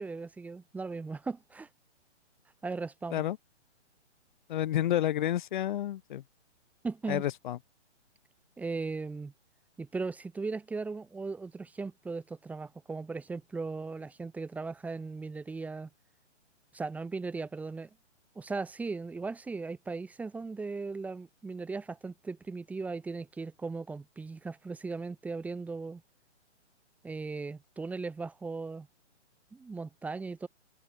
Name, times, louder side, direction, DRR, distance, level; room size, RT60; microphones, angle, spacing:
voice 1, 0.0-1.7 2.6-3.3 6.8-7.2 8.6-9.3 9.8-15.9 16.7-17.9 18.3-26.0 27.0-28.9 29.5-30.5, right 4 dB, 5° right, 1.6 m, -37 dB
voice 2, 4.5-6.2 7.1-7.6, left 12 dB, 40° left, 3.4 m, -30 dB
hypercardioid pair, 160°, 36 cm